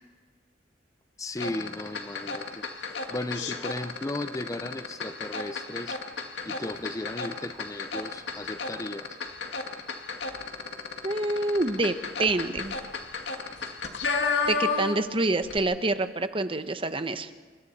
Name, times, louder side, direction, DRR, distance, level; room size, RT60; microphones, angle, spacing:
voice 1, 1.2-2.7 3.1-6.0 6.4-9.2, left 2 dB, 20° left, 11 dB, 0.6 m, -35 dB
sound 1, 1.4-15.1 15.4-15.6, left 4 dB, 80° left, 2.1 m, -33 dB
voice 2, 11.0-11.9 12.2-12.8 14.5-17.3, right 2 dB, 30° right, 10 dB, 1.0 m, -27 dB
28.0 x 25.0 x 4.2 m, 1.5 s
head